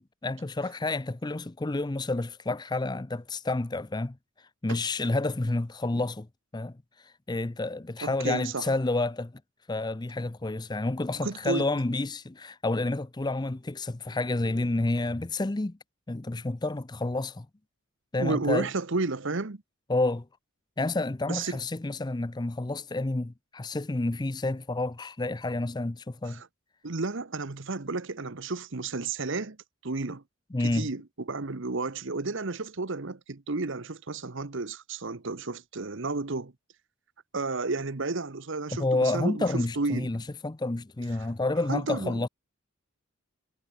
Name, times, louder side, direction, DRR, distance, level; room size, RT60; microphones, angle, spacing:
voice 1, 0.2-4.2 4.6-6.3 6.5-6.7 7.3-9.3 9.7-15.8 16.1-17.5 18.1-18.7 19.9-20.3 20.8-26.4 30.5-30.9 38.8-42.3, left 2 dB, 20° left, 0.5 m, -29 dB
voice 2, 8.0-8.8 11.2-11.7 18.2-19.6 21.3-21.6 26.3-26.5 26.8-29.6 29.8-30.2 30.6-31.0 31.3-36.5 37.3-40.1 41.7-42.3, right 3 dB, 55° right, 1.0 m, -32 dB
head